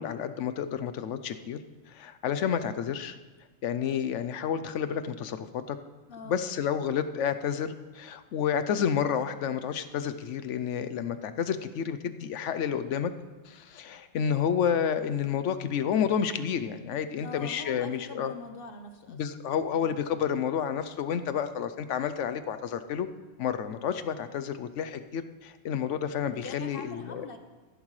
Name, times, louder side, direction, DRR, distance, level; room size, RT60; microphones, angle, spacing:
voice 1, 0.0-1.6 1.9-3.2 3.6-5.8 6.2-13.1 13.5-18.3 19.1-23.1 23.4-27.3, left 8 dB, 90° left, 10 dB, 1.0 m, -30 dB
voice 2, 6.1-6.4 17.2-19.2 26.4-27.4, left 4 dB, 55° left, 7 dB, 1.1 m, -42 dB
15.5 x 11.0 x 3.2 m, 1.3 s
omnidirectional pair, 1.2 m